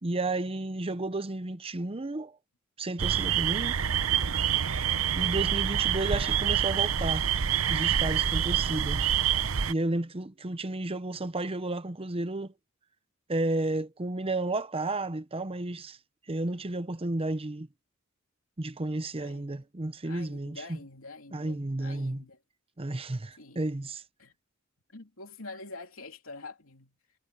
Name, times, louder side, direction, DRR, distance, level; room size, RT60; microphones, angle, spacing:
voice 1, 0.0-2.4 2.8-3.8 5.1-7.3 7.7-9.0 9.7-12.5 13.3-16.0 16.3-17.7 18.6-20.8 21.3-22.2 22.8-24.0, right 2 dB, 30° right, 0.8 m, -32 dB
sound 1, 3.0-9.7, right 8 dB, 85° right, 0.8 m, -27 dB
voice 2, 19.1-19.6 20.0-22.4 23.4-23.6 24.2-24.3 24.9-27.0, left 3 dB, 75° left, 3.3 m, -46 dB
head